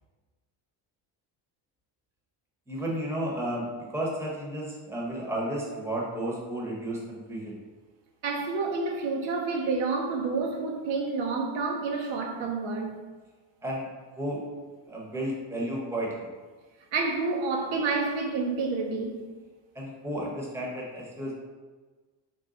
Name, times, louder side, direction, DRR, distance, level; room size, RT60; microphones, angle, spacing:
voice 1, 2.7-7.6 13.6-13.9 14.2-14.4 14.9-16.3 19.7-21.4, right 1 dB, 5° right, 0.8 m, -32 dB
voice 2, 8.2-13.0 16.9-19.3, right 4 dB, 80° right, 0.7 m, -29 dB
4.0 x 2.2 x 3.7 m
cardioid pair, 110°, 46 cm